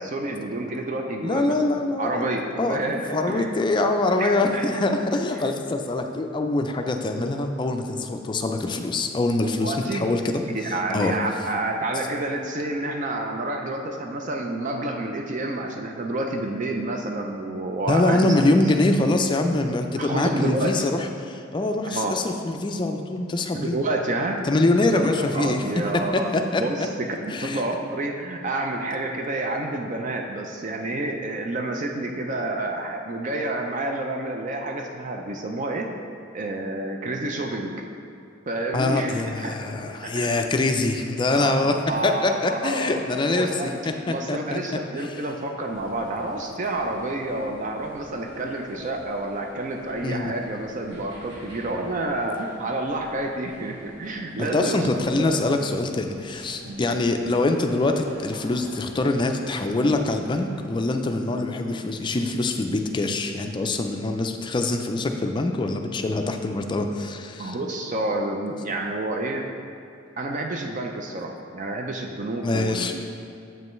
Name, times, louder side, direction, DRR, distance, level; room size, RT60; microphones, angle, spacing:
voice 1, 0.0-1.6 2.0-3.5 4.2-4.6 5.3-5.4 9.6-10.1 10.4-18.7 20.0-20.8 21.9-22.2 23.5-24.4 24.9-35.9 36.3-37.7 38.5-39.6 40.1-40.3 40.8-40.9 41.3-43.0 43.3-43.8 44.1-55.3 56.6-56.8 67.4-69.5 70.2-73.1, right 2 dB, 40° right, 2 dB, 0.4 m, -29 dB
voice 2, 1.2-2.2 2.6-2.8 3.1-10.4 10.9-11.1 17.8-23.8 24.4-25.6 26.1-26.9 27.3-27.6 38.7-41.7 42.0-44.6 45.0-45.2 50.0-50.3 54.4-67.6 72.4-73.0, left 2 dB, 25° left, 5 dB, 0.4 m, -24 dB
sound 1, 45.6-60.8, equal, 75° right, 1.4 m, -46 dB
7.5 x 5.4 x 3.1 m, 2.5 s
head